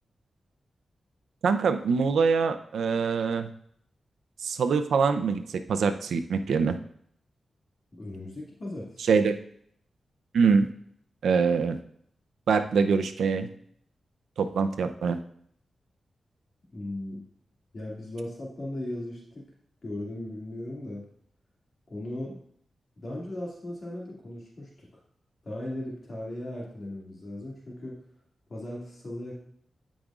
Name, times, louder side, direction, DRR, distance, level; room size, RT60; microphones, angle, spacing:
voice 1, 1.4-3.5 4.4-6.8 9.1-9.3 10.3-10.7 11.2-11.8 12.5-13.5 14.4-15.2, right 5 dB, 90° right, 8 dB, 0.5 m, -24 dB
voice 2, 7.9-9.3 16.7-17.2 17.7-19.5 19.8-21.1 21.9-22.4 23.0-24.9 25.4-28.0 28.5-29.4, left 1 dB, 50° left, -4 dB, 2.2 m, -37 dB
12.5 x 5.1 x 2.4 m, 0.66 s
cardioid pair, 80°, 0 cm